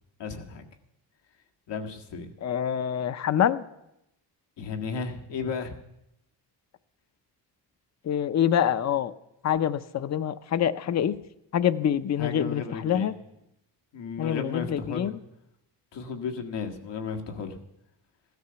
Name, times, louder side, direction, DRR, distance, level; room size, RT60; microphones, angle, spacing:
voice 1, 0.2-0.7 1.7-2.3 4.6-5.8 12.2-13.1 13.9-15.1 15.9-17.6, left 5 dB, 85° left, 4 dB, 1.9 m, -34 dB
voice 2, 2.4-3.6 8.1-9.1 9.4-11.2 11.5-13.1 14.2-15.1, left 9 dB, 40° left, 15 dB, 0.6 m, -26 dB
16.0 x 13.0 x 6.9 m, 0.85 s
wide cardioid pair, 165°, 41 cm